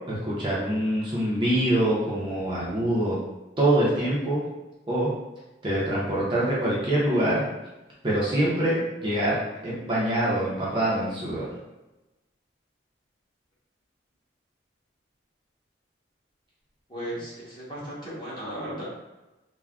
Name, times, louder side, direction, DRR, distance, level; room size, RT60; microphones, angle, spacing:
voice 1, 0.1-3.2 3.6-4.4 4.9-5.1 5.6-7.5 8.0-11.5, right 1 dB, 25° right, -7 dB, 0.5 m, -25 dB
voice 2, 16.9-18.8, equal, 25° left, -8 dB, 0.9 m, -35 dB
3.4 x 2.1 x 2.3 m, 1.0 s
head